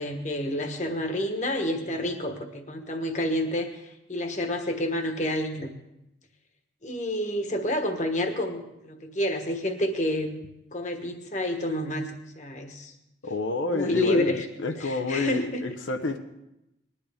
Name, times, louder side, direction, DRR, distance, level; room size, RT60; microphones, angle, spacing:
voice 1, 0.0-5.7 6.8-10.4 10.7-12.9 13.7-14.5 14.7-15.6, left 1 dB, 40° left, 5 dB, 1.3 m, -29 dB
voice 2, 13.2-16.2, left 2 dB, 90° left, 5 dB, 0.9 m, -29 dB
20.0 x 11.5 x 3.5 m, 0.87 s
head